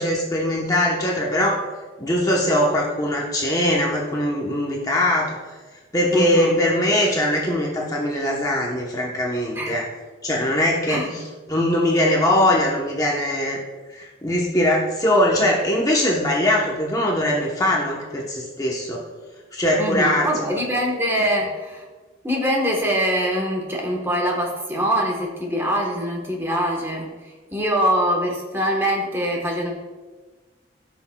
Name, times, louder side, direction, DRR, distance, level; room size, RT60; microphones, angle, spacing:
voice 1, 0.0-1.6 2.0-5.4 5.9-9.8 10.2-11.0 11.5-13.6 13.9-19.1 19.5-20.5 21.2-21.3, left 1 dB, 20° left, -3 dB, 0.9 m, -21 dB
voice 2, 6.1-6.6 9.5-9.7 10.9-11.2 19.8-21.8 22.2-27.1 27.5-29.7, equal, 10° right, -1 dB, 1.1 m, -23 dB
14.5 x 6.0 x 2.2 m, 1.3 s
head